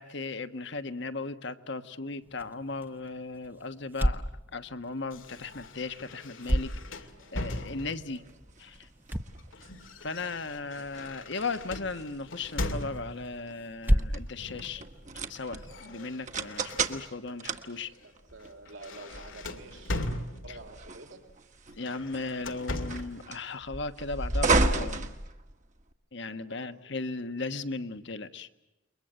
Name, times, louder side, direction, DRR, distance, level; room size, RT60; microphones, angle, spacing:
voice 1, 0.0-8.2 8.6-8.9 10.0-14.8 15.3-17.9 20.5-20.6 21.8-25.1 26.1-28.5, left 3 dB, 65° left, 10 dB, 1.3 m, -37 dB
sound 1, 2.2-15.8, equal, 10° right, 0.9 m, -35 dB
sound 2, 5.1-8.2 9.1-13.4 14.4-14.8 15.0-17.4 17.8-18.0 18.4-20.8 21.7-23.2, left 1 dB, 85° left, 2.5 m, -39 dB
sound 3, 6.5-25.9, right 3 dB, 40° right, 1.5 m, -35 dB
voice 2, 17.1-20.0 20.2-21.2 26.2-27.2, right 2 dB, 75° right, 4 dB, 4.0 m, -50 dB
29.0 x 23.0 x 7.7 m, 0.98 s
head